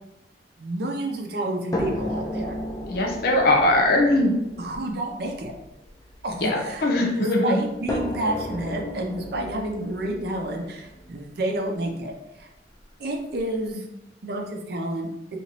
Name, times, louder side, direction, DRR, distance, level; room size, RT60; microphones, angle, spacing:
voice 1, 0.6-2.6 4.6-5.5 6.2-6.9 7.1-12.1 12.4-12.5 13.0-13.9 14.2-15.1, right 1 dB, 60° right, 2 dB, 0.5 m, -29 dB
sound 1, 1.7-6.9 7.9-11.8 12.8-12.9 13.3-13.4, left 1 dB, 20° left, 0.3 m, -34 dB
voice 2, 2.9-4.3 6.4-7.6, left 1 dB, 60° left, 0 dB, 0.6 m, -20 dB
3.0 x 2.5 x 2.8 m, 0.89 s
head